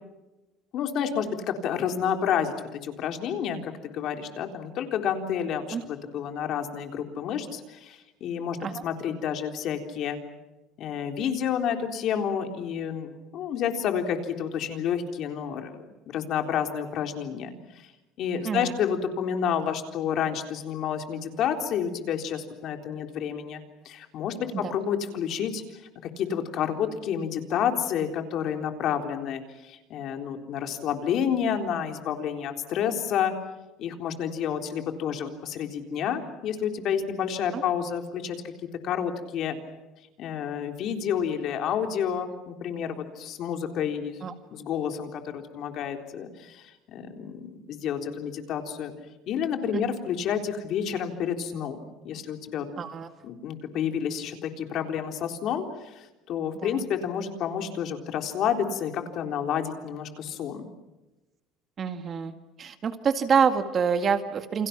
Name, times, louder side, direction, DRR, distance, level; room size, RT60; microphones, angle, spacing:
voice 1, 0.7-8.6 8.8-10.2 10.8-17.9 18.2-33.3 33.8-38.5 38.8-39.6 40.2-44.2 44.5-48.9 49.3-52.7 53.2-60.7, left 8 dB, 50° left, 5 dB, 3.8 m, -30 dB
voice 2, 52.8-53.1 56.6-56.8 61.8-62.3 62.6-64.7, right 6 dB, 30° right, 8 dB, 2.0 m, -26 dB
29.5 x 28.5 x 6.0 m, 1.1 s
cardioid pair, 155°, 0 cm